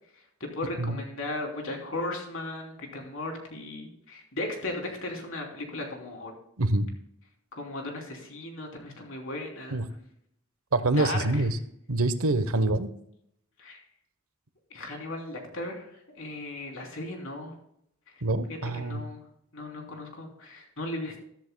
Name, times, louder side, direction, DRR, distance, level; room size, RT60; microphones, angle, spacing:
voice 1, 0.4-6.3 7.5-9.8 10.9-11.2 13.6-13.8 14.7-17.5 18.5-19.2 19.5-21.2, left 2 dB, 65° left, 1 dB, 3.3 m, -36 dB
voice 2, 6.6-6.9 9.7-9.9 10.7-11.6 11.9-12.9 18.2-19.0, right 2 dB, 90° right, 11 dB, 1.0 m, -26 dB
13.5 x 13.5 x 2.3 m, 0.73 s
head